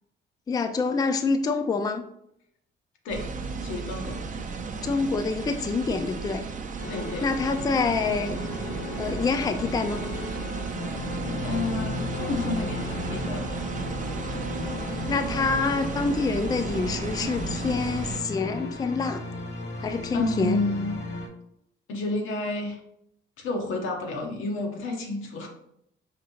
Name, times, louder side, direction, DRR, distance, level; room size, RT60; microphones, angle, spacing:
voice 1, 0.5-2.0 4.8-6.4 7.2-8.4 9.0-10.0 15.1-19.2 19.8-20.6, left 4 dB, 20° left, 8 dB, 0.3 m, -26 dB
sound 1, 3.1-18.2, right 5 dB, 40° right, 0.5 m, -34 dB
voice 2, 3.6-4.2 6.9-7.2 11.2-13.8 20.1-21.0 21.9-22.8 23.4-25.5, left 2 dB, 85° left, 2 dB, 0.9 m, -30 dB
sound 2, 6.8-21.3, left 2 dB, 60° left, 0.9 m, -35 dB
5.1 x 2.7 x 2.8 m, 0.75 s
cardioid pair, 90°, 20 cm